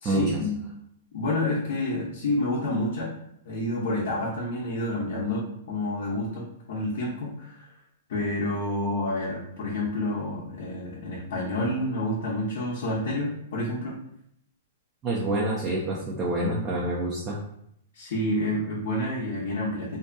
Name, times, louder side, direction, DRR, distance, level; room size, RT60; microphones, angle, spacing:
voice 1, 0.0-0.6 1.1-3.1 3.4-7.7 8.1-13.9 17.9-20.0, left 1 dB, 65° left, -5 dB, 0.7 m, -29 dB
voice 2, 15.0-17.4, right 1 dB, 25° right, -4 dB, 0.5 m, -27 dB
2.6 x 2.4 x 2.2 m, 0.73 s
hypercardioid pair, 135°, 0 cm